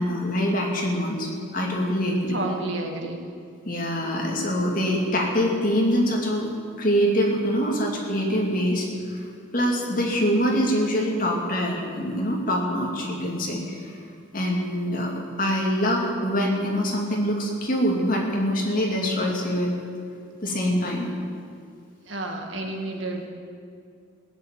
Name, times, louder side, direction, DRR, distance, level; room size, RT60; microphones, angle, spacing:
voice 1, 0.0-2.4 3.6-9.3 9.5-13.9 14.3-15.1 15.4-19.8 20.4-21.1, equal, 45° left, -1 dB, 2.5 m, -24 dB
voice 2, 2.3-3.2 22.0-23.3, right 2 dB, 75° right, 2 dB, 2.0 m, -30 dB
17.5 x 7.4 x 9.0 m, 2.3 s
head